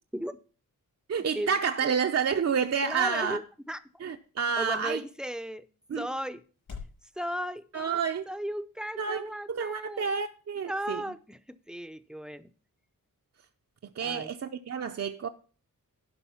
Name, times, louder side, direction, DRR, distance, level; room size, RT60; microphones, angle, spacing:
sound 1, 0.8-7.0, left 5 dB, 75° left, 6.4 m, -52 dB
voice 1, 1.1-3.4 4.0-5.0 5.9-6.1 7.7-8.3 9.0-11.0 14.0-15.3, right 6 dB, 50° right, 0.6 m, -29 dB
voice 2, 2.8-3.8 4.6-5.7 5.9-6.4 7.2-7.7 8.3-10.1 10.6-12.5 14.0-14.3, equal, ahead, 0.5 m, -35 dB
11.5 x 5.2 x 5.6 m
wide cardioid pair, 125°, 34 cm